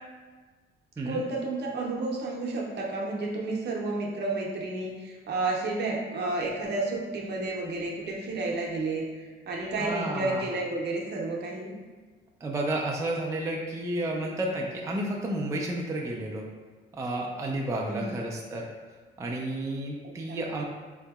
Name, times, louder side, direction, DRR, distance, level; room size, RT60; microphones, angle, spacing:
voice 1, 1.1-11.7 17.9-18.2 20.0-20.4, right 2 dB, 55° right, -1 dB, 0.7 m, -31 dB
voice 2, 9.8-10.4 12.4-16.4 16.9-18.7 19.2-20.6, right 1 dB, 15° right, -2 dB, 0.4 m, -31 dB
3.8 x 2.7 x 2.3 m, 1.4 s
cardioid pair, 90°, 20 cm